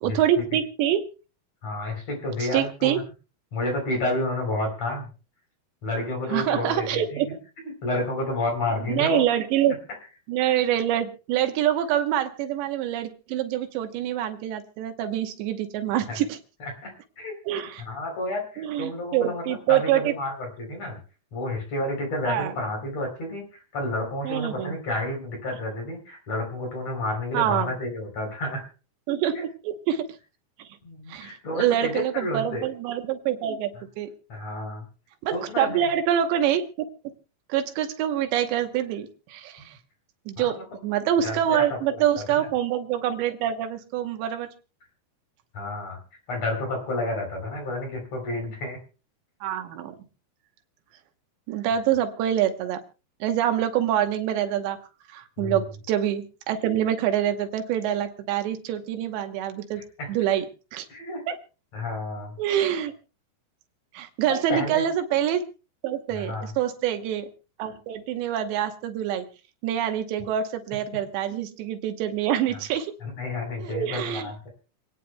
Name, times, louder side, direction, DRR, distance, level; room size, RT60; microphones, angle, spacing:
voice 1, 0.0-1.0 2.4-3.0 6.3-7.3 8.9-9.8 10.3-16.4 17.5-17.8 18.6-20.1 22.2-22.5 24.2-24.8 27.3-27.7 29.1-30.1 30.6-30.7 31.1-34.1 35.2-36.6 37.5-39.7 40.3-44.5 49.4-50.0 51.5-52.8 53.2-54.8 55.1-59.8 60.1-60.5 60.7-60.9 61.3-61.4 62.4-62.9 63.9-65.4 65.8-67.3 67.6-69.3 69.6-72.9 73.6-74.3, right 10 dB, 85° right, 7 dB, 3.3 m, -26 dB
voice 2, 1.6-3.0 3.5-5.1 5.8-7.4 7.8-9.2 16.6-17.3 17.9-21.0 21.3-28.7 29.3-29.5 30.8-32.6 34.3-34.9 35.3-35.9 39.6-39.7 40.4-40.6 41.2-42.0 42.3-42.5 45.5-46.0 46.3-48.8 55.4-55.6 60.0-60.1 60.9-61.2 61.7-62.3 64.3-64.8 66.1-66.5 71.3-71.4 73.0-74.5, left 1 dB, 40° left, 1 dB, 4.5 m, -30 dB
27.5 x 9.5 x 2.2 m, 0.33 s
omnidirectional pair, 4.9 m